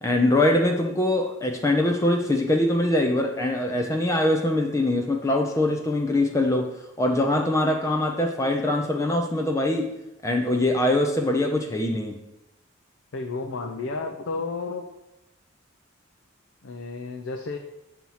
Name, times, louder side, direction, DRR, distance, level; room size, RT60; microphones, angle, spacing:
voice 1, 0.0-6.7 7.0-9.9 10.2-12.2, left 1 dB, 15° left, 2 dB, 0.4 m, -23 dB
voice 2, 13.1-14.9 16.6-17.6, left 3 dB, 70° left, 2 dB, 0.5 m, -32 dB
7.5 x 2.9 x 5.5 m, 0.90 s
head